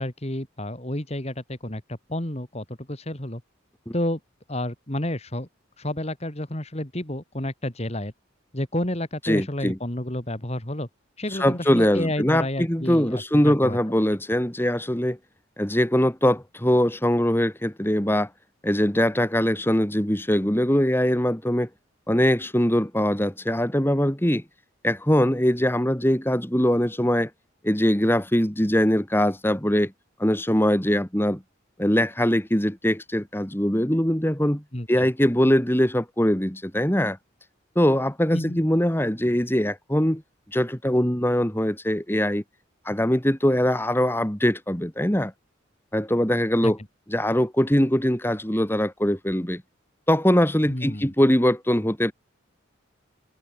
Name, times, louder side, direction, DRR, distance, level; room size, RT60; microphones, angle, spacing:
voice 1, 0.0-3.4 3.9-4.2 4.5-5.5 5.8-8.1 8.5-10.9 11.2-13.8 34.7-35.1 38.3-38.6 46.6-46.7 50.7-51.1, left 1 dB, 30° left, 2.6 m, -30 dB
voice 2, 9.2-9.8 11.3-15.2 15.6-18.3 18.6-21.7 22.1-24.4 24.8-27.3 27.6-29.9 30.2-31.4 31.8-34.6 34.9-37.2 37.8-40.2 40.5-42.4 42.9-45.3 45.9-46.8 47.1-49.6 50.1-52.1, equal, 10° left, 2.0 m, -22 dB
head